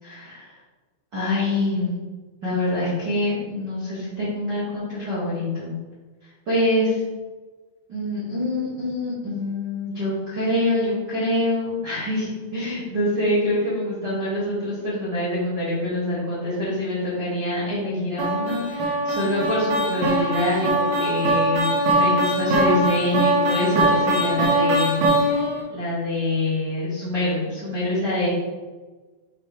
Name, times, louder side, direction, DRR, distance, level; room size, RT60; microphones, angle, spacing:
voice 1, 0.0-0.5 1.1-1.9 2.4-5.7 6.4-7.0 7.9-25.0 25.3-25.4 25.7-28.3, left 1 dB, 85° right, -10 dB, 0.9 m, -25 dB
sound 1, 18.2-25.6, right 1 dB, 70° right, 3.3 m, -21 dB
8.1 x 4.0 x 3.3 m, 1.3 s
omnidirectional pair, 5.6 m